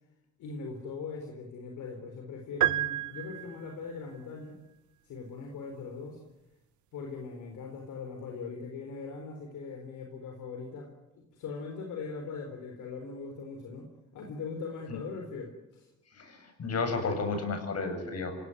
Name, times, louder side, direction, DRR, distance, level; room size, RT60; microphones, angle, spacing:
voice 1, 0.4-4.6 5.0-6.2 6.9-15.9, left 4 dB, 80° left, 3 dB, 4.1 m, -40 dB
sound 1, 2.6-3.9, right 14 dB, 75° right, 1.0 m, -30 dB
voice 2, 16.1-18.4, left 3 dB, 55° left, 6 dB, 7.9 m, -32 dB
26.5 x 18.5 x 9.7 m, 0.97 s
cardioid pair, 90°, 30 cm